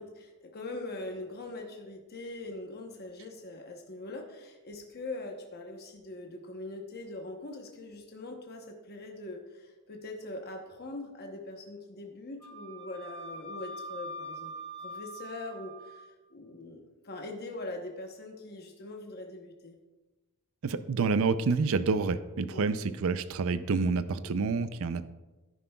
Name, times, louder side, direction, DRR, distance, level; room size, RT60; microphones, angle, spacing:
voice 1, 0.0-19.8 22.5-22.7, left 2 dB, 45° left, 2 dB, 0.9 m, -42 dB
Wind instrument woodwind instrument, 12.4-16.0, right 1 dB, 5° left, 1.7 m, -43 dB
voice 2, 20.6-25.0, right 4 dB, 65° right, 13 dB, 0.5 m, -28 dB
11.0 x 9.8 x 2.3 m, 1.1 s
head